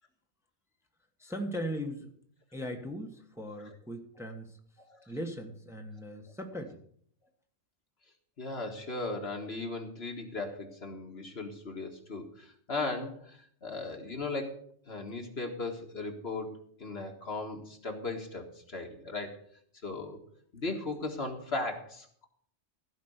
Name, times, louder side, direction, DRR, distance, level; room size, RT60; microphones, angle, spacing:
voice 1, 1.2-2.1 2.5-4.6 5.1-6.8, equal, ahead, 3 dB, 1.3 m, -38 dB
voice 2, 8.4-19.4 19.8-20.2 20.5-22.3, left 3 dB, 60° left, 3 dB, 2.0 m, -37 dB
15.5 x 5.2 x 8.1 m, 0.62 s
omnidirectional pair, 1.2 m